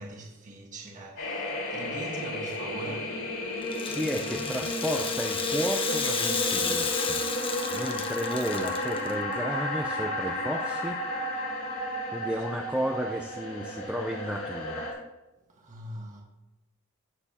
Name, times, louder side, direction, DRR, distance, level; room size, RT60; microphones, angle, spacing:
voice 1, 0.0-3.1 15.6-16.2, right 1 dB, 35° right, 1.5 m, -41 dB
sound 1, 1.2-14.9, left 1 dB, 70° left, 3.9 m, -33 dB
Rattle (instrument), 3.6-9.1, left 5 dB, 25° left, 1.0 m, -32 dB
voice 2, 3.9-7.3 7.7-11.0 11.3-11.5 12.1-15.0, equal, 5° right, 0.5 m, -33 dB
16.5 x 6.8 x 2.9 m
head